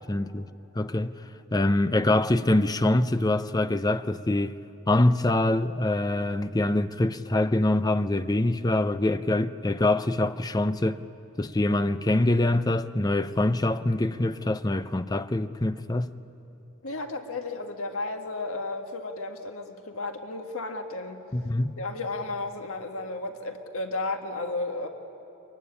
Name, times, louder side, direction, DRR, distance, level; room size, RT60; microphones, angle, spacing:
voice 1, 0.1-0.5 0.7-1.2 1.5-4.6 4.9-11.0 11.4-16.1 21.3-21.8, left 1 dB, 20° left, 0.6 m, -24 dB
voice 2, 16.8-21.2 21.8-24.9, left 2 dB, 75° left, 1.7 m, -33 dB
24.5 x 23.5 x 9.9 m
head